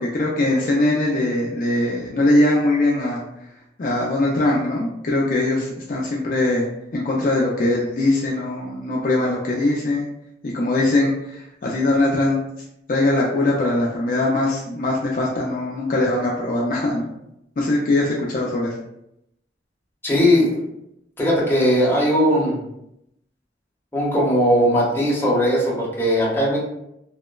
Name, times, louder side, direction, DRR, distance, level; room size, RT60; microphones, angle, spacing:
voice 1, 0.0-3.2 3.8-6.7 6.9-10.1 10.4-12.4 12.9-17.1 17.6-18.8, left 2 dB, 45° left, -3 dB, 0.3 m, -21 dB
voice 2, 20.0-20.6 21.2-22.6 23.9-26.6, equal, 10° left, -7 dB, 0.7 m, -18 dB
2.9 x 2.1 x 2.2 m, 0.81 s
head